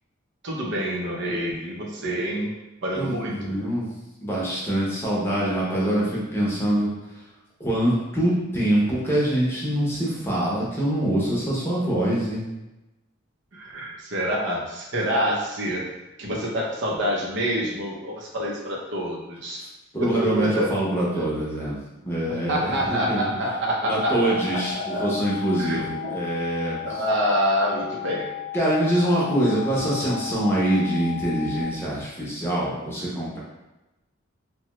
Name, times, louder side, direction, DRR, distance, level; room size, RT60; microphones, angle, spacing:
voice 1, 0.4-2.5 2.8-3.6 13.5-15.9 16.2-19.6 20.0-20.7 21.2-21.3 22.3-25.1 25.6-26.2 26.8-28.3, equal, 65° right, -3 dB, 0.6 m, -27 dB
voice 2, 2.9-3.9 4.2-6.9 7.6-12.4 19.6-19.7 19.9-21.8 22.0-23.3 23.9-26.8 28.5-33.4, right 1 dB, 10° left, -6 dB, 0.7 m, -24 dB
sound 1, 23.9-31.6, left 12 dB, 85° left, 0.5 m, -35 dB
2.8 x 2.2 x 2.9 m, 1.0 s
head